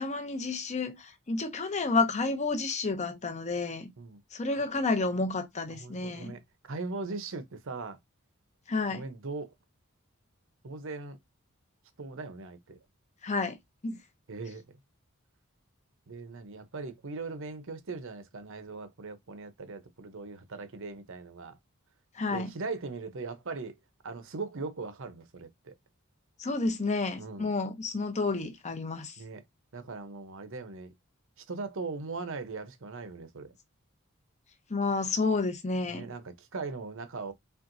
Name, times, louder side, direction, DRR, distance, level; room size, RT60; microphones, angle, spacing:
voice 1, 0.0-3.9 4.3-6.3 8.7-9.0 13.2-13.6 13.8-14.0 22.2-22.5 26.4-29.1 34.7-36.1, left 3 dB, 30° left, 0.7 m, -30 dB
voice 2, 5.7-8.0 8.9-9.5 10.6-11.2 12.0-12.8 14.3-14.6 16.1-21.6 22.3-23.8 24.0-25.8 27.2-27.5 29.2-29.4 29.7-30.9 31.4-33.5 35.8-37.3, right 3 dB, 60° right, 0.8 m, -39 dB
4.5 x 3.4 x 2.6 m
head